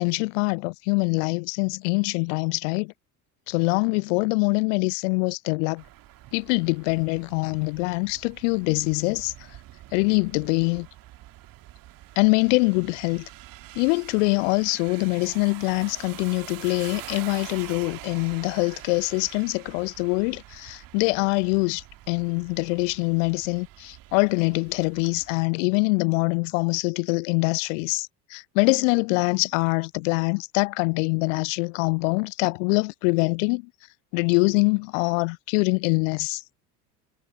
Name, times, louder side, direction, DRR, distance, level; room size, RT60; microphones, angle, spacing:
voice 1, 0.0-2.9 3.5-5.8 6.3-9.3 9.9-10.9 12.2-13.3 13.8-33.6 34.1-36.4, left 31 dB, 50° left, 0.6 m, -24 dB
sound 1, 5.8-25.4, right 15 dB, 45° right, 2.4 m, -45 dB
figure-of-eight pair, 65°, 48 cm